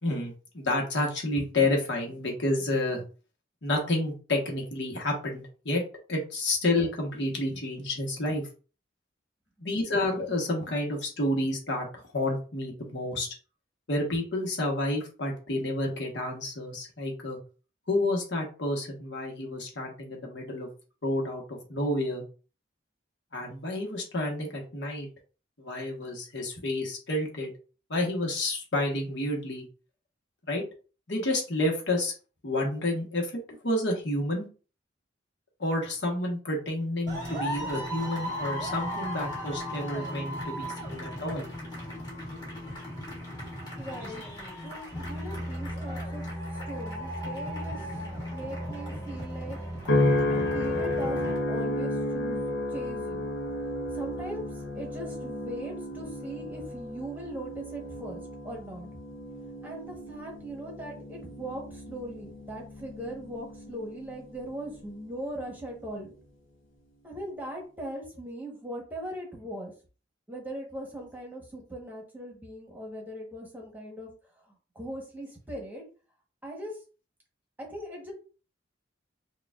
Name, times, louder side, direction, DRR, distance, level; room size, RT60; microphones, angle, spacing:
voice 1, 0.0-3.0 3.6-5.8 6.1-8.4 9.6-13.3 13.9-17.4 17.9-20.7 21.0-22.2 23.3-25.1 25.6-27.5 27.9-29.6 30.5-30.6 31.1-32.1 32.4-33.3 33.6-34.5 35.6-41.5, left 1 dB, 65° left, 0 dB, 1.1 m, -30 dB
sound 1, 37.1-51.4, equal, 20° left, 1.7 m, -36 dB
voice 2, 43.8-44.2 44.6-46.3 46.7-47.9 48.1-49.6 50.2-53.3 53.9-58.9 59.6-66.1 67.0-69.7 70.3-74.1 74.5-75.8 76.4-76.8 77.6-78.1, right 1 dB, 10° right, -1 dB, 1.0 m, -40 dB
sound 2, 49.9-64.4 64.9-65.3, left 1 dB, 90° left, 0.7 m, -32 dB
6.6 x 2.3 x 2.4 m, 0.36 s
head